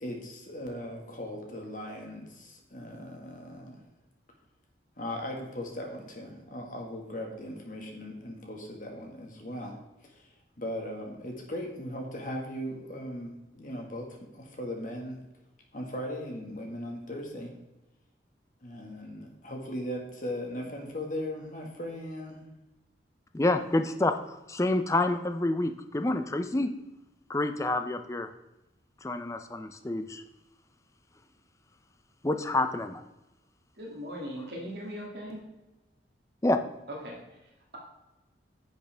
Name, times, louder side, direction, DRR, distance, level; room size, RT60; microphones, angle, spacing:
voice 1, 0.0-3.8 5.0-9.8 10.1-10.2 10.6-15.2 15.7-17.5 18.6-22.5, left 1 dB, 45° left, 1 dB, 1.7 m, -38 dB
voice 2, 23.3-24.2 24.5-26.7 27.3-28.3 29.0-30.2 32.2-33.0 36.4-36.6, left 2 dB, 15° left, 8 dB, 0.4 m, -28 dB
voice 3, 33.7-35.4 36.9-37.8, equal, 55° right, -2 dB, 2.1 m, -40 dB
10.0 x 6.5 x 3.4 m, 0.98 s
head